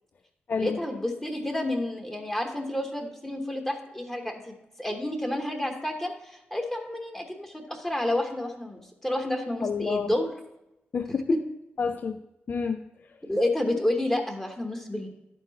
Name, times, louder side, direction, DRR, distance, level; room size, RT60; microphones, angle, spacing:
voice 1, 0.6-10.3 11.3-11.4 13.3-15.1, left 1 dB, 10° left, 2 dB, 1.1 m, -30 dB
voice 2, 9.6-10.1 10.9-11.4 11.8-12.2 12.5-12.9, left 5 dB, 50° left, 7 dB, 0.3 m, -28 dB
11.0 x 4.5 x 4.0 m, 0.90 s
cardioid pair, 85°, 4 cm